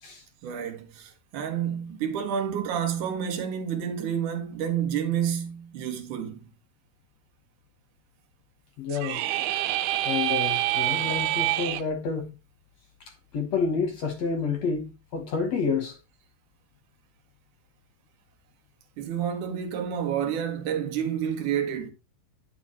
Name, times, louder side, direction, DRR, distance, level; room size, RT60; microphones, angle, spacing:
voice 1, 0.4-6.5 19.0-21.9, right 8 dB, 60° right, 2.9 m, -29 dB
voice 2, 8.8-9.2 10.0-12.4 13.0-16.0, left 5 dB, 55° left, 2.1 m, -29 dB
sound 1, 8.9-11.8, right 15 dB, 85° right, 2.6 m, -26 dB
11.0 x 6.8 x 3.2 m
omnidirectional pair, 4.5 m